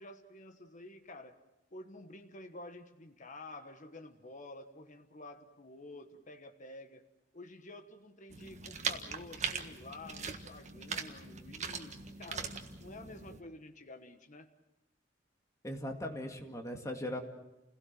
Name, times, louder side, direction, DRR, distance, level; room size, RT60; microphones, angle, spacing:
voice 1, 0.0-1.4 1.7-7.0 7.3-12.5 12.8-14.5, left 2 dB, 40° left, 6 dB, 1.3 m, -50 dB
sound 1, 8.3-13.4, right 5 dB, 40° right, 1.6 m, -40 dB
voice 2, 15.6-17.2, left 1 dB, 15° left, 3 dB, 2.3 m, -39 dB
29.0 x 17.0 x 7.7 m, 0.96 s
head